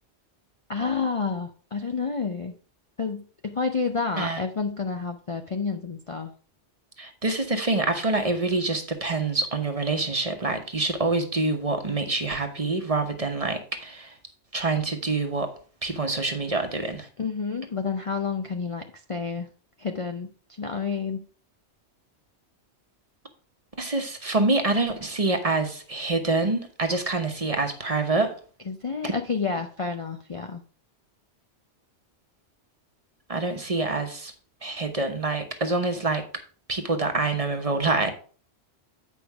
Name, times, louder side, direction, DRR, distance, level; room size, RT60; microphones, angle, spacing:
voice 1, 0.7-2.5 3.0-6.3 17.2-19.5 19.8-20.3 20.6-21.2 28.7-30.6, left 5 dB, 40° left, 5 dB, 0.5 m, -29 dB
voice 2, 7.0-14.2 14.5-15.5 15.8-17.1 23.8-28.3 29.0-29.1 33.3-34.3 34.6-36.2 36.7-38.1, right 3 dB, 35° right, 6 dB, 1.1 m, -26 dB
8.7 x 5.1 x 4.7 m, 0.40 s
omnidirectional pair, 1.2 m